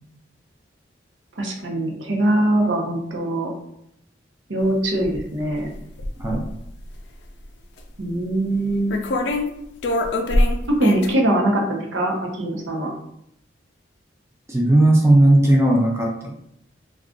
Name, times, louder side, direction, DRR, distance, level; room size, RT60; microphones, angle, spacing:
voice 1, 1.4-3.5 4.5-5.7 8.0-9.0 10.7-12.9, right 1 dB, 90° right, 0 dB, 0.7 m, -22 dB
sound 1, 5.0-5.2 5.5-6.6 7.8-7.9 8.9-9.5 9.8-11.1, left 1 dB, 70° left, 0.4 m, -22 dB
voice 2, 14.5-16.3, right 1 dB, 15° right, -2 dB, 0.4 m, -16 dB
2.4 x 2.3 x 3.6 m, 0.75 s
head